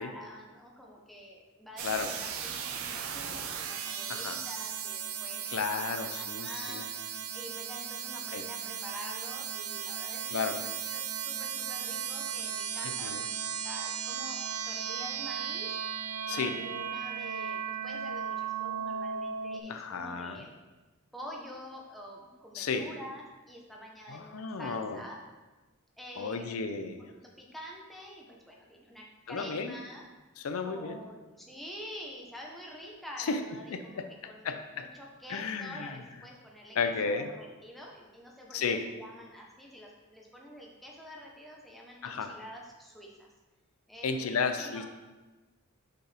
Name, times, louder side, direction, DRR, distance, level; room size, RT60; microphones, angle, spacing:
voice 1, 0.0-13.2 13.6-15.8 16.3-20.5 21.1-25.2 26.0-26.6 27.2-30.1 30.6-36.8 37.0-43.3 43.9-44.8, equal, ahead, -3 dB, 0.9 m, -47 dB
sound 1, 1.8-19.6, right 8 dB, 75° right, 0.6 m, -36 dB
voice 2, 5.5-6.9 8.3-8.4 10.3-10.6 13.0-13.2 16.3-16.5 19.7-20.4 22.5-22.9 24.1-25.0 26.2-27.0 29.3-29.8 30.4-31.0 33.2-33.4 34.0-34.1 34.4-34.9 35.3-36.0 36.8-37.3 38.5-38.8 42.0-42.4 44.0-44.8, left 5 dB, 80° left, 8 dB, 0.5 m, -33 dB
6.2 x 5.3 x 3.4 m, 1.2 s
head